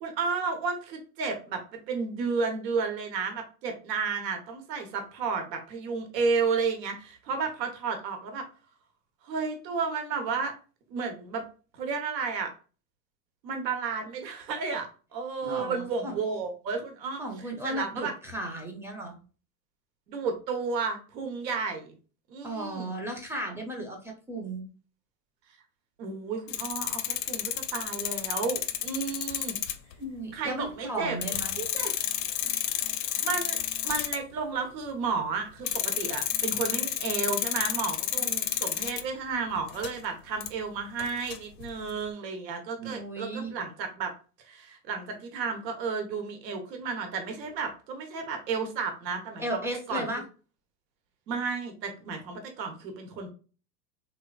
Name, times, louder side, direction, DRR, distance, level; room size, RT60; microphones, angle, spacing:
voice 1, 0.0-8.5 9.2-10.5 10.9-11.4 11.7-12.5 13.4-17.2 17.6-18.1 20.1-21.9 22.3-22.9 26.0-29.6 30.3-31.2 31.6-31.9 33.2-33.6 33.8-44.1 44.5-49.4 49.9-50.1 51.3-53.3, right 5 dB, 80° right, 5 dB, 1.1 m, -32 dB
voice 2, 15.4-16.2 17.2-19.2 22.4-24.6 30.0-31.6 42.8-43.5 49.4-50.2, right 1 dB, 5° right, 1 dB, 0.5 m, -35 dB
sound 1, 26.5-29.9 30.7-30.8 31.2-34.2 35.7-39.0 39.6-40.0 40.4-40.5 41.0-41.9, left 12 dB, 75° left, 0.7 m, -31 dB
3.5 x 2.9 x 2.3 m, 0.36 s
hypercardioid pair, 120°, 50 cm